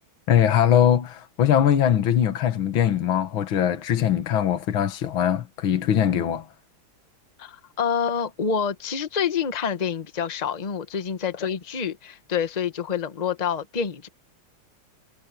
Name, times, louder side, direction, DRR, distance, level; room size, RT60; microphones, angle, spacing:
voice 1, 0.3-6.5, left 10 dB, 70° left, 2.2 m, -21 dB
voice 2, 7.4-14.1, left 7 dB, 25° left, 0.9 m, -27 dB
omnidirectional pair, 2.3 m